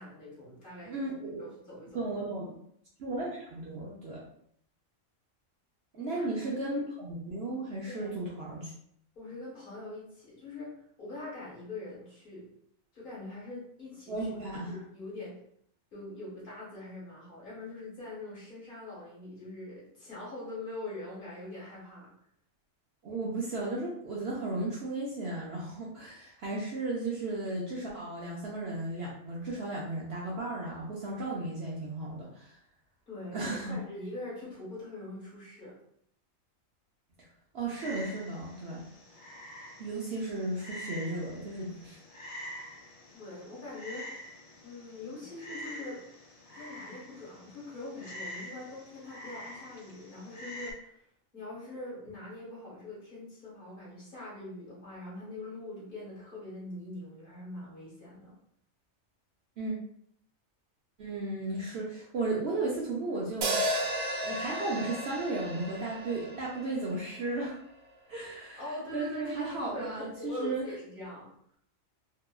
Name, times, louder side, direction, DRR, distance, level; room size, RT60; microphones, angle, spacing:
voice 1, 0.0-0.9 1.4-2.0 5.9-6.3 6.6-6.7 7.9-8.2 9.1-12.5 12.9-14.3 14.7-15.4 15.9-22.1 33.1-35.8 43.1-44.1 44.6-46.1 46.5-51.0 51.3-58.3 68.5-71.3, left 2 dB, 40° left, -7 dB, 1.1 m, -43 dB
voice 2, 0.8-1.4 1.9-2.6 3.0-4.2 6.0-8.7 14.1-14.8 23.0-32.5 33.3-33.8 37.2-37.3 37.5-38.9 39.8-42.0 59.6-59.7 61.0-63.6 64.2-67.6 68.1-70.6, right 2 dB, 65° right, -4 dB, 0.7 m, -35 dB
Frog, 37.8-50.7, left 1 dB, 70° left, 1.0 m, -46 dB
sound 1, 63.4-67.7, right 1 dB, 85° right, 1.0 m, -34 dB
2.8 x 2.3 x 2.2 m, 0.67 s
omnidirectional pair, 1.4 m